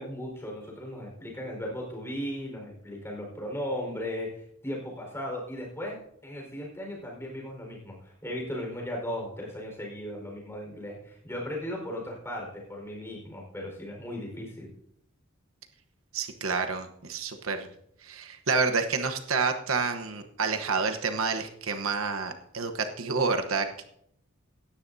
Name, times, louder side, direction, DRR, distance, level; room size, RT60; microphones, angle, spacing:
voice 1, 0.0-14.7, equal, 15° left, -1 dB, 4.6 m, -37 dB
voice 2, 16.1-17.7 18.0-23.8, right 4 dB, 80° right, 6 dB, 1.1 m, -29 dB
17.5 x 13.0 x 2.7 m, 0.72 s
head